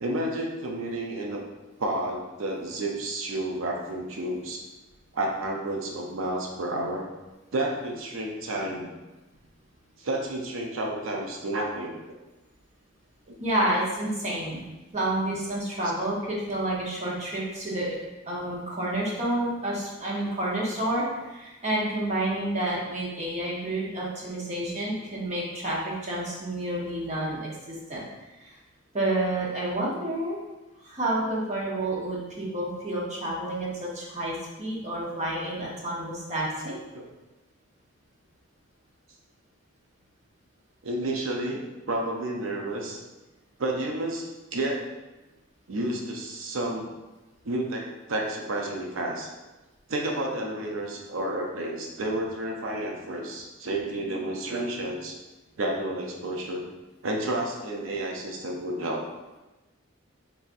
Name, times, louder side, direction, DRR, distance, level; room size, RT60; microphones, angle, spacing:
voice 1, 0.0-1.4 1.8-4.6 5.1-7.0 7.5-8.9 10.0-12.0 13.3-13.4 36.9-37.1 40.8-43.0 43.6-44.9 45.7-46.9 47.4-49.3 49.9-55.2 55.6-56.6 57.0-59.1, right 1 dB, 80° right, 0 dB, 0.6 m, -31 dB
voice 2, 13.4-14.6 14.9-18.0 18.3-28.0 28.4-28.5 28.9-30.4 30.8-36.8, right 1 dB, 35° right, -4 dB, 0.8 m, -29 dB
4.1 x 3.4 x 2.5 m, 1.1 s
head